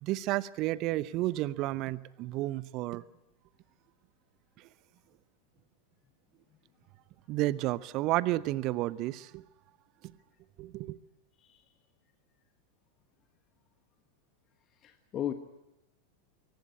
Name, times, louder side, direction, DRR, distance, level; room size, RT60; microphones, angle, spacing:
voice 1, 0.0-3.0 4.6-4.7 7.3-9.4 10.6-11.0, right 17 dB, 40° right, 0.8 m, -31 dB
voice 2, 14.8-15.3, left 11 dB, 30° left, 1.3 m, -35 dB
24.0 x 18.5 x 9.5 m
figure-of-eight pair, 90°, 0 cm